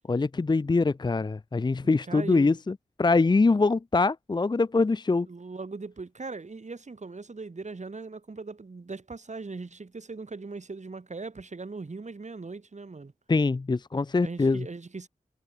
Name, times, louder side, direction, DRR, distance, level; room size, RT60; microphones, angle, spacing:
voice 1, 0.1-5.3 13.3-14.7, left 3 dB, 30° left, 0.6 m, -24 dB
voice 2, 1.8-2.6 5.3-13.1 14.2-15.1, right 3 dB, 55° right, 5.5 m, -39 dB
cardioid pair, 50°, 14 cm